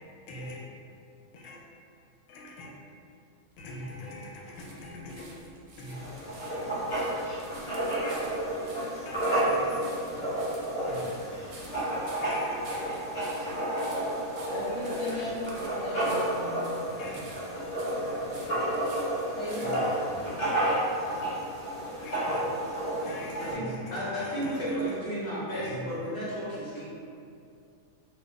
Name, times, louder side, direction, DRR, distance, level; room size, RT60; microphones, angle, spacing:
voice 1, 0.3-0.6 1.3-1.6 2.3-2.7 3.6-5.3 5.8-6.0 8.0-8.2 9.1-9.8 10.9-11.1 12.2-12.6 17.0-17.2 19.6-19.9 22.0-22.4 23.0-24.9 25.5-25.9, left 1 dB, 90° left, -2 dB, 1.0 m, -42 dB
sound 1, 3.5-20.1 20.8-20.9, right 2 dB, 70° right, 0.9 m, -51 dB
Writing, 5.9-23.5, right 1 dB, 35° left, 1.0 m, -31 dB
voice 2, 14.5-16.7 19.3-19.7, left 1 dB, 35° right, -12 dB, 0.5 m, -36 dB
voice 3, 23.9-26.9, equal, 50° left, -9 dB, 1.3 m, -33 dB
2.4 x 2.4 x 3.8 m, 2.5 s
omnidirectional pair, 1.4 m